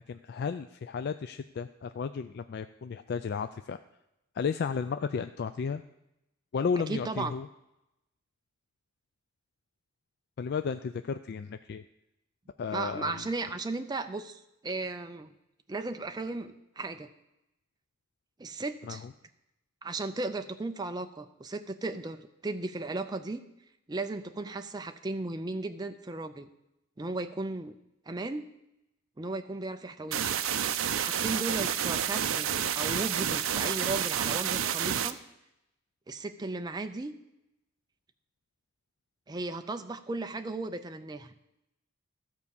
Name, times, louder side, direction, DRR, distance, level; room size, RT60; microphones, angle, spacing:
voice 1, 0.1-3.8 4.3-5.8 6.5-7.5 10.4-11.8 12.6-13.3 18.9-19.1, left 6 dB, 50° left, 10 dB, 0.3 m, -33 dB
voice 2, 6.9-7.3 12.7-15.3 15.7-17.1 18.4-19.1 19.8-23.4 23.9-26.5 27.0-27.7 28.1-28.5 29.2-30.3 30.9-32.5 32.7-35.2 36.1-37.1 39.3-41.3, right 3 dB, 20° right, 7 dB, 0.4 m, -35 dB
sound 1, 30.1-35.1, right 9 dB, 70° right, 0.5 m, -29 dB
13.5 x 4.7 x 7.1 m, 0.88 s
head